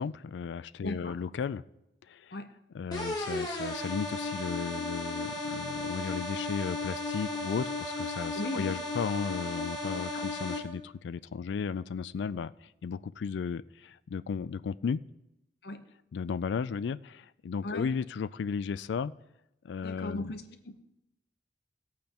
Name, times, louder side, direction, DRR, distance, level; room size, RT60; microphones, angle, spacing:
voice 1, 0.0-1.6 2.1-2.4 2.7-15.0 16.1-19.1 19.6-20.3, left 6 dB, 80° left, 17 dB, 0.3 m, -35 dB
voice 2, 0.8-1.1 2.3-2.5 8.3-8.8 10.1-10.2 15.6-15.8 17.6-17.9 19.8-20.8, left 1 dB, 65° left, 8 dB, 0.8 m, -37 dB
sound 1, 2.9-10.6, left 2 dB, 20° left, 1.4 m, -35 dB
16.5 x 8.6 x 2.9 m, 0.89 s
head